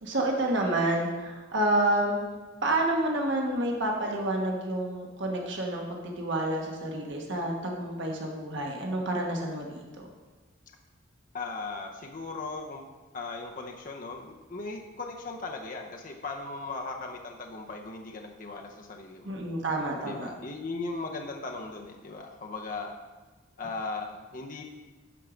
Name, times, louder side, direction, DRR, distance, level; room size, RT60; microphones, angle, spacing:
voice 1, 0.0-2.2 2.6-10.1 19.2-20.3, right 1 dB, 60° right, 0 dB, 1.3 m, -29 dB
voice 2, 11.3-12.8 13.1-19.3 20.0-22.9 23.6-24.6, left 3 dB, 40° left, 2 dB, 0.7 m, -38 dB
12.0 x 4.6 x 5.1 m, 1.3 s
head